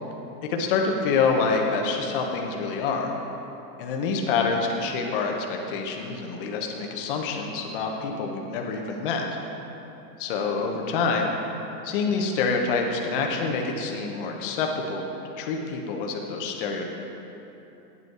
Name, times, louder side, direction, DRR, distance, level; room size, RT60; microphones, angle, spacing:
voice 1, 0.5-3.1 3.8-9.2 10.2-11.3 11.8-15.1 15.4-16.9, left 4 dB, 35° left, 2 dB, 1.0 m, -26 dB
9.5 x 8.1 x 4.7 m, 3.0 s
supercardioid pair, 170°, 48 cm